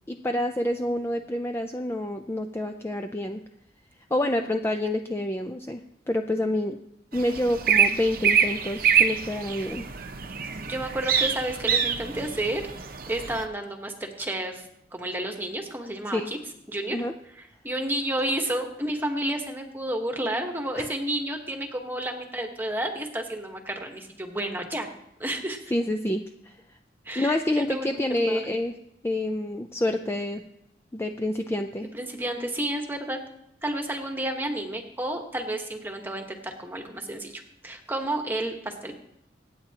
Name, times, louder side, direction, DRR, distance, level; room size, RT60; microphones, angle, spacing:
voice 1, 0.1-3.4 4.1-6.8 7.1-9.9 16.1-16.3 16.9-17.1 20.8-20.9 25.7-26.6 27.2-28.8 29.0-30.4 30.9-31.9, left 1 dB, 15° left, 5 dB, 0.4 m, -28 dB
sound 1, 7.1-13.5, right 7 dB, 50° right, 0.8 m, -25 dB
voice 2, 10.7-16.4 16.7-17.0 17.4-24.9 25.2-25.6 27.0-28.5 31.9-33.2 33.6-38.9, right 1 dB, 10° right, 3 dB, 1.2 m, -31 dB
25.0 x 8.9 x 2.9 m, 0.79 s
head